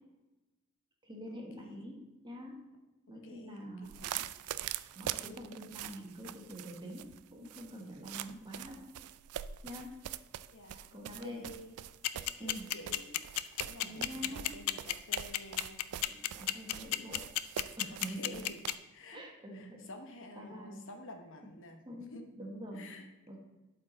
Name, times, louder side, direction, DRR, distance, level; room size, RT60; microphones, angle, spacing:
voice 1, 1.0-2.6 3.1-4.1 4.9-7.0 7.3-8.8 9.6-10.0 10.9-11.4 12.4-12.7 13.8-14.5 16.3-17.3 17.8-18.4 19.1-19.9 20.4-20.8 21.8-22.8 23.3-23.4, equal, 20° right, 0 dB, 1.3 m, -45 dB
voice 2, 3.2-4.3 5.4-5.5 10.5-11.8 12.1-13.2 13.6-15.8 17.9-18.6 18.9-19.2 19.5-22.2 22.7-23.1, left 1 dB, 60° left, 4 dB, 1.0 m, -50 dB
sound 1, 3.8-18.8, right 11 dB, 80° right, 0.3 m, -44 dB
sound 2, 12.0-18.7, left 15 dB, 85° left, 0.4 m, -31 dB
11.5 x 4.6 x 4.0 m, 1.1 s
head